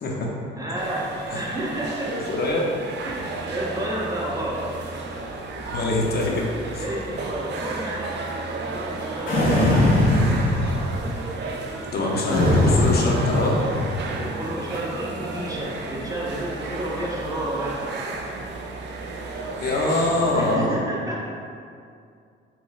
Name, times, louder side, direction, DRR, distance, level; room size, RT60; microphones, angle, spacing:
voice 1, 0.6-2.2 3.0-4.7 6.8-8.2 8.4-9.8 12.1-12.3 14.1-17.8 20.3-21.2, right 1 dB, 15° right, -4 dB, 0.7 m, -31 dB
sound 1, 0.8-20.6, right 3 dB, 60° right, 0.4 m, -33 dB
voice 2, 2.1-2.6 5.7-6.3 11.5-11.6 11.9-13.6 19.6-20.8, left 2 dB, 50° left, -2 dB, 0.6 m, -23 dB
sound 2, 9.3-11.1 12.3-14.1, left 1 dB, 80° left, 1.2 m, -20 dB
3.7 x 3.1 x 2.3 m, 2.3 s
cardioid pair, 90°, 20 cm